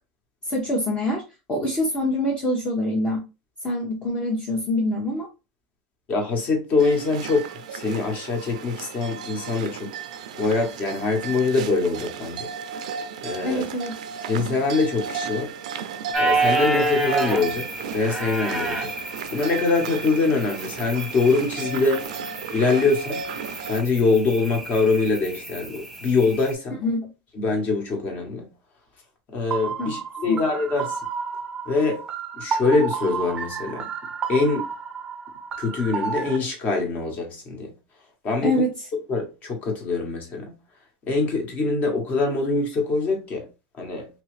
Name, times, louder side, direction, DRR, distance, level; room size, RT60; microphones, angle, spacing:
voice 1, 0.5-1.2 1.5-3.2 3.6-5.3 13.4-14.0 26.8-27.1 29.8-29.9 30.3-30.4 38.4-38.7, left 1 dB, 25° left, 1.0 m, -25 dB
voice 2, 6.1-9.9 10.4-12.5 13.2-13.6 14.3-15.5 16.2-18.9 19.3-22.1 22.5-23.2 23.7-26.8 27.3-28.5 29.3-31.0 31.6-32.0 32.4-33.9 34.3-34.6 35.6-37.7 38.2-38.5 39.1-40.6 41.1-43.5 43.8-44.1, left 3 dB, 40° left, 1.4 m, -24 dB
sound 1, 6.8-23.8, right 7 dB, 85° right, 0.4 m, -35 dB
sound 2, 16.1-26.5, right 2 dB, ahead, 1.1 m, -29 dB
sound 3, 29.5-36.4, right 6 dB, 20° right, 0.5 m, -31 dB
3.1 x 2.7 x 3.2 m
supercardioid pair, 115°, 4 cm